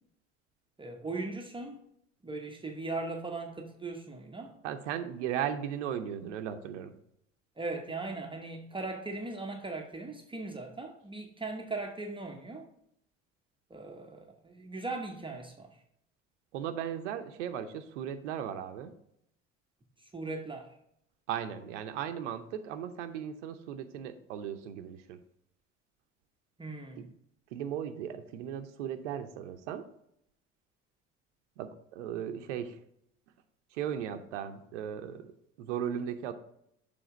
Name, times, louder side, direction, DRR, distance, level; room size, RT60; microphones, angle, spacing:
voice 1, 0.8-1.8 2.2-4.6 7.6-12.7 13.7-15.8 20.0-20.8 26.6-27.1, right 3 dB, 15° right, 0.8 m, -39 dB
voice 2, 4.6-6.9 16.5-18.9 21.3-25.2 27.0-27.1 27.5-29.9 31.6-32.8 33.7-35.3 35.6-36.3, right 9 dB, 70° right, 0.6 m, -37 dB
6.9 x 3.5 x 5.0 m
figure-of-eight pair, 60°, 37 cm